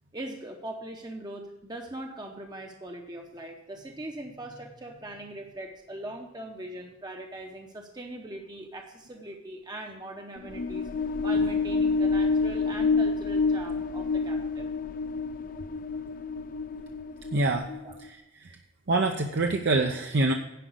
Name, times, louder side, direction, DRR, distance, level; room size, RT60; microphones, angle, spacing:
voice 1, 0.1-11.0 11.2-14.7 17.8-18.0, right 1 dB, 20° right, 2 dB, 0.8 m, -41 dB
sound 1, 10.4-18.1, left 4 dB, 45° left, 0.5 m, -28 dB
voice 2, 17.3-17.7 18.0-18.6 18.9-20.3, right 2 dB, 65° right, 4 dB, 0.7 m, -26 dB
10.0 x 5.2 x 7.8 m, 0.97 s
head